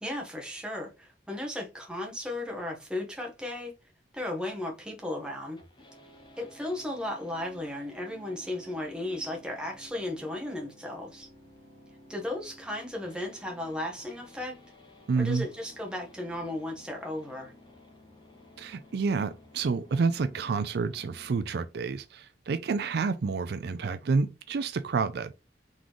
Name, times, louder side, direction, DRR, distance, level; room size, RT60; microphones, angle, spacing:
voice 1, 0.0-3.7 4.1-5.6 6.4-11.3 12.1-14.5 15.2-17.5, left 1 dB, 5° right, 1.2 m, -35 dB
sound 1, 5.6-21.6, left 1 dB, 25° left, 1.0 m, -54 dB
voice 2, 15.1-15.5 18.6-25.3, right 4 dB, 60° right, 0.4 m, -29 dB
3.9 x 3.7 x 3.1 m
head